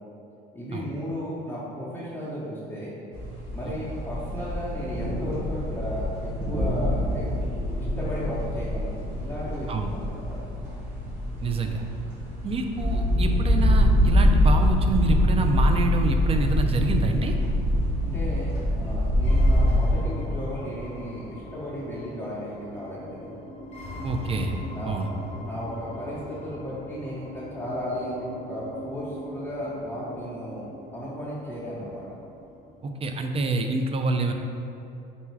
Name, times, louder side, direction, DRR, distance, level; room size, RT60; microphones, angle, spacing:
voice 1, 0.5-2.9 3.5-7.3 7.8-8.9 9.2-10.4 18.0-23.3 24.7-25.2 25.4-30.6 30.9-32.0, equal, 10° left, -10 dB, 0.9 m, -35 dB
sound 1, 3.1-19.9, equal, 85° right, 1.4 m, -24 dB
voice 2, 11.4-11.8 12.4-17.3 24.0-24.6 24.9-25.1 32.8-34.3, right 3 dB, 30° right, 5 dB, 0.4 m, -27 dB
sound 2, 19.2-33.2, left 1 dB, 35° left, 1.0 m, -40 dB
4.1 x 2.3 x 4.6 m, 2.8 s
supercardioid pair, 80°, 21 cm